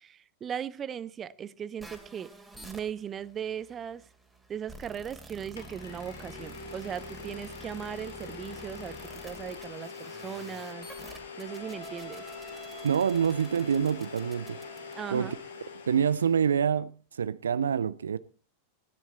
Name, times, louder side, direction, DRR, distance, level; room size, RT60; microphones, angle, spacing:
voice 1, 0.0-2.3 2.6-4.1 4.5-10.9 11.4-12.3 14.9-15.3, right 8 dB, 25° right, 0.7 m, -38 dB
sound 1, 1.8-15.4, right 2 dB, 5° right, 2.7 m, -49 dB
Domestic sounds home sounds, 5.1-5.2 5.6-16.6, left 5 dB, 70° left, 3.1 m, -44 dB
voice 2, 12.8-14.6 15.1-15.4 15.9-18.2, right 7 dB, 70° right, 0.5 m, -26 dB
17.0 x 10.5 x 4.3 m
figure-of-eight pair, 90°, 0 cm